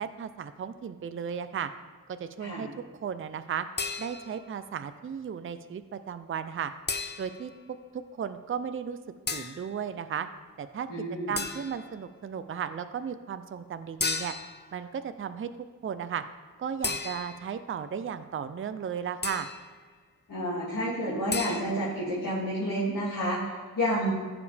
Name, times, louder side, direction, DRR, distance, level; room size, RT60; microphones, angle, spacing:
voice 1, 0.0-1.7 2.1-2.7 3.0-3.7 4.0-6.7 7.2-7.5 7.9-9.0 9.3-10.3 10.6-10.9 11.3-14.3 14.7-15.5 15.8-16.2 16.6-19.5, right 7 dB, 40° right, 11 dB, 0.5 m, -35 dB
sound 1, 3.8-4.5 6.9-7.5 9.3-9.7 11.4-11.9 14.0-14.7 16.8-17.6 19.2-19.7 21.3-21.6, left 4 dB, 30° left, 0.6 m, -34 dB
voice 2, 10.9-11.4 20.3-24.1, equal, 65° left, -8 dB, 2.2 m, -30 dB
15.0 x 5.0 x 3.4 m, 1.6 s
cardioid pair, 65°, 34 cm